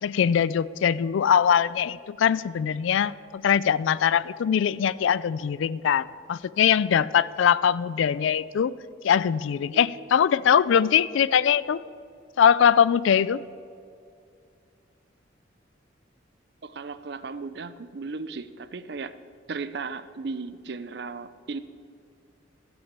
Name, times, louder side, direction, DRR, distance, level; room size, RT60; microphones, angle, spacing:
voice 1, 0.0-8.7 9.0-11.8 12.4-13.4, left 8 dB, 80° left, 19 dB, 0.3 m, -22 dB
voice 2, 9.7-10.1 16.6-19.1 19.5-21.6, right 4 dB, 60° right, 13 dB, 0.5 m, -36 dB
14.0 x 6.3 x 7.4 m, 2.3 s
head